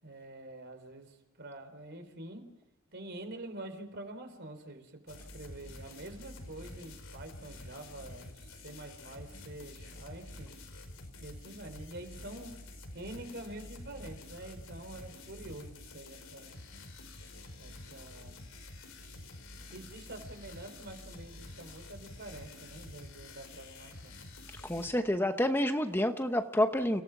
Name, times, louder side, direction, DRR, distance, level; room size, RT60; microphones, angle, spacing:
voice 1, 0.0-2.5 2.9-10.5 11.2-12.5 12.9-16.5 17.6-18.4 19.7-24.2, right 1 dB, 55° right, 7 dB, 4.0 m, -46 dB
sound 1, 5.1-24.9, left 2 dB, 85° left, 4.9 m, -48 dB
voice 2, 24.6-27.0, left 1 dB, 10° left, 6 dB, 1.0 m, -28 dB
30.0 x 17.5 x 6.0 m, 0.99 s
head